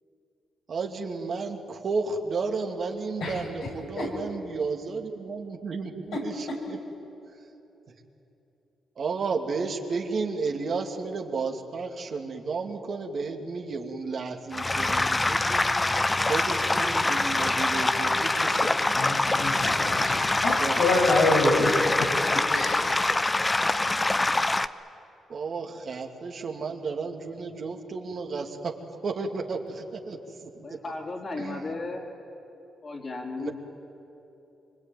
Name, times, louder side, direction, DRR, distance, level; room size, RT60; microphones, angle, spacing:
voice 1, 0.7-6.8 9.0-15.7 16.2-19.2 20.6-20.8 25.3-28.8 29.0-30.8 31.4-31.8 33.4-33.5, right 4 dB, 55° right, 2 dB, 2.6 m, -33 dB
sound 1, 14.5-24.7, left 2 dB, 20° left, 0.8 m, -25 dB
voice 2, 18.9-21.7 22.5-22.8, left 2 dB, 80° left, -2 dB, 7.5 m, -26 dB
voice 3, 30.6-32.1 32.8-33.5, left 3 dB, 45° left, 1 dB, 4.4 m, -34 dB
25.0 x 25.0 x 9.3 m, 3.0 s
supercardioid pair, 60°, 0 cm